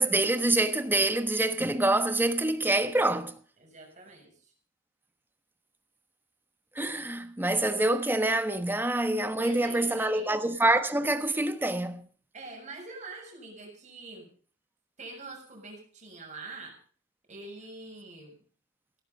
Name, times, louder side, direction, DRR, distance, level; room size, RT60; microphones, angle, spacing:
voice 1, 0.0-3.3 6.8-12.0, right 2 dB, 10° right, 1.3 m, -26 dB
voice 2, 3.6-4.5 9.3-10.3 12.3-14.3 15.0-16.8 17.3-18.4, right 3 dB, 40° right, 7.0 m, -45 dB
17.0 x 14.0 x 5.3 m
head